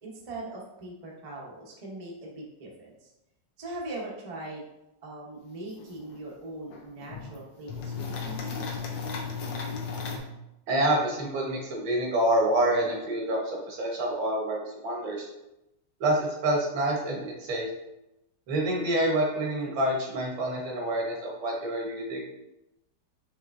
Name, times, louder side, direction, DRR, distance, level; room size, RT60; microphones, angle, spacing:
voice 1, 0.0-3.1 3.6-4.6 5.0-8.6, right 2 dB, 35° right, -3 dB, 0.5 m, -41 dB
sound 1, 5.8-5.9 6.1-6.2 6.7-7.3 7.7-10.2, left 5 dB, 80° left, 1.4 m, -34 dB
voice 2, 10.7-15.3 16.0-17.7 18.5-22.2, right 1 dB, 80° right, -2 dB, 1.8 m, -27 dB
5.5 x 3.2 x 2.5 m, 0.90 s
omnidirectional pair, 2.0 m